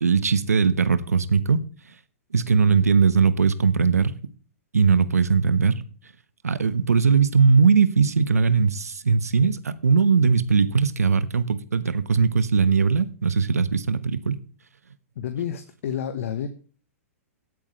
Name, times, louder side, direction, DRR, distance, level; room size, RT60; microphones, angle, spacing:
voice 1, 0.0-1.6 2.3-4.2 4.7-5.8 6.4-14.4, right 5 dB, 85° right, 1.1 m, -20 dB
voice 2, 15.1-16.5, left 8 dB, 60° left, 1.2 m, -29 dB
17.5 x 8.7 x 3.2 m
hypercardioid pair, 120°, 8 cm